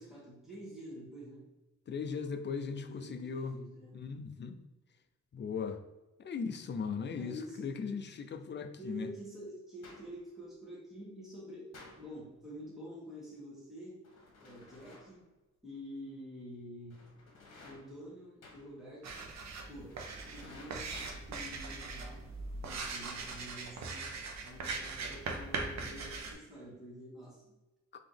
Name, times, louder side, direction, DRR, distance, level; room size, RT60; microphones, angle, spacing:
voice 1, 0.0-1.5 2.8-4.0 7.1-7.9 8.8-14.1 14.4-15.2 15.6-17.0 17.6-19.3 19.7-22.2 22.6-24.1 24.4-27.5, equal, ahead, -6 dB, 1.3 m, -48 dB
voice 2, 1.9-3.5 3.9-4.6 5.3-5.8 6.2-9.1, left 5 dB, 40° left, 7 dB, 0.4 m, -38 dB
sound 1, 9.8-10.3 11.7-12.3 14.0-15.3 16.9-18.1 18.4-18.9 19.9-21.5, left 2 dB, 60° left, 1.2 m, -55 dB
sound 2, 19.0-26.3, right 3 dB, 65° right, 0.7 m, -40 dB
3.5 x 2.9 x 3.8 m, 1.1 s
wide cardioid pair, 125°, 30 cm